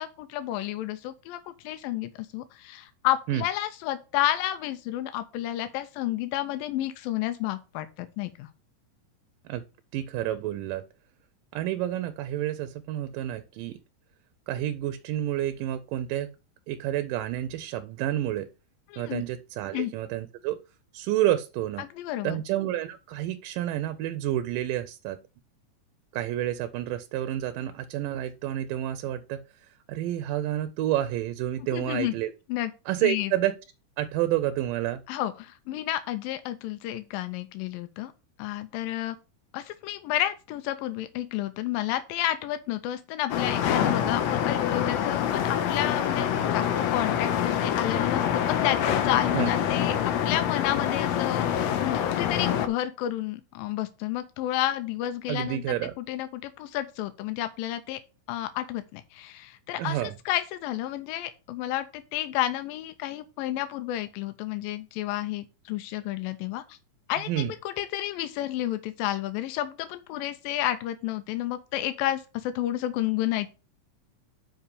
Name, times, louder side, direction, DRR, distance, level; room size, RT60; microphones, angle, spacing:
voice 1, 0.0-8.5 18.9-19.2 19.7-19.9 21.8-22.4 31.7-32.1 32.5-32.7 33.0-33.3 35.1-38.1 38.4-39.2 39.5-58.0 58.3-66.8 67.1-73.5, left 13 dB, 90° left, 2.4 m, -31 dB
voice 2, 9.9-10.8 11.5-13.8 14.5-16.3 16.7-18.5 19.0-20.6 20.9-21.8 22.2-25.2 26.1-32.3 32.9-33.5 34.0-35.0 49.3-49.5 55.3-56.0 59.8-60.1 67.3-67.5, right 13 dB, 80° right, 2.2 m, -29 dB
sound 1, 43.3-52.7, left 9 dB, 70° left, 1.7 m, -26 dB
5.9 x 5.5 x 6.7 m
omnidirectional pair, 3.9 m